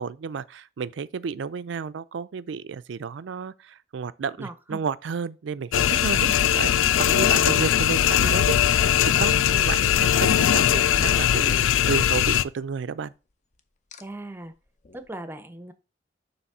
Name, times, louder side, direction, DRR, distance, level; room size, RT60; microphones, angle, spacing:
voice 1, 0.0-6.3 6.5-13.1, right 6 dB, 70° right, 0.4 m, -32 dB
voice 2, 4.4-4.8 6.2-6.4 14.0-14.5 14.9-15.7, right 1 dB, 10° right, 0.6 m, -38 dB
sound 1, 5.7-12.4, left 10 dB, 85° left, 0.3 m, -20 dB
sound 2, 11.0-12.8 13.9-14.0 14.8-15.0, left 3 dB, 40° left, 0.6 m, -41 dB
6.9 x 3.1 x 5.9 m
head